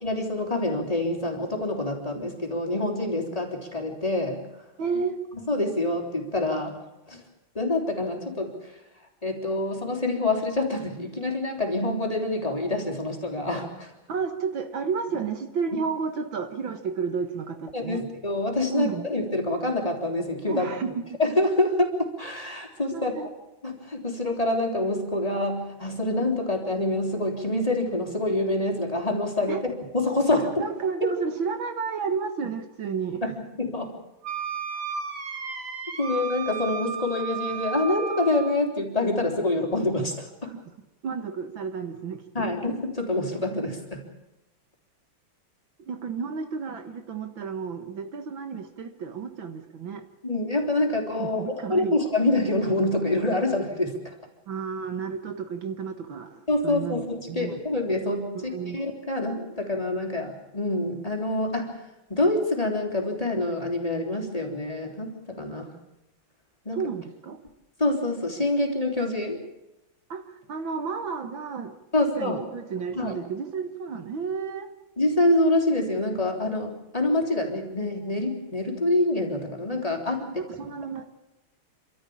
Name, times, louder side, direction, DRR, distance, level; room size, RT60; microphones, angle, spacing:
voice 1, 0.0-4.5 5.3-6.8 7.1-7.2 7.6-8.8 9.2-13.9 17.7-20.7 21.2-23.1 23.6-30.6 33.2-33.3 33.6-34.0 36.0-40.5 42.3-44.1 50.2-54.1 56.5-65.7 66.7-66.9 67.8-69.4 71.9-72.4 72.9-73.1 75.0-80.2, left 2 dB, 15° left, 1 dB, 3.6 m, -26 dB
voice 2, 4.8-5.2 14.1-18.0 18.7-19.1 20.5-20.9 22.9-23.3 29.5-29.6 30.6-33.3 40.5-40.6 41.0-42.5 45.9-50.0 51.2-52.0 54.5-57.0 57.3-57.6 58.3-58.8 66.7-67.4 70.1-74.8 80.2-81.1, right 5 dB, 65° right, 7 dB, 2.2 m, -32 dB
Wind instrument woodwind instrument, 34.2-38.6, right 6 dB, 50° right, 3.0 m, -33 dB
29.5 x 13.0 x 8.7 m, 0.97 s
omnidirectional pair, 2.3 m